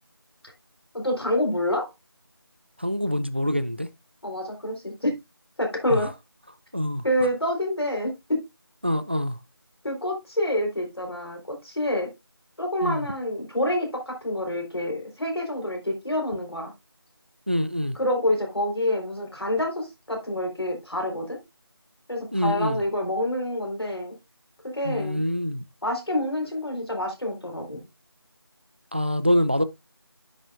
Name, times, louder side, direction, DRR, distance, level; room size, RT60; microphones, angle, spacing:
voice 1, 0.9-1.9 4.2-5.2 5.6-6.1 7.0-8.4 9.8-12.1 12.6-16.7 17.9-21.4 22.1-24.2 24.7-25.2 25.8-27.8, left 1 dB, 85° left, 4.2 m, -27 dB
voice 2, 2.8-3.9 5.9-6.0 6.7-7.0 8.8-9.4 12.8-13.0 17.5-18.0 22.3-22.8 24.8-25.6 28.9-29.6, equal, 25° right, 0.4 m, -25 dB
10.0 x 5.9 x 2.5 m
figure-of-eight pair, 175°, 13 cm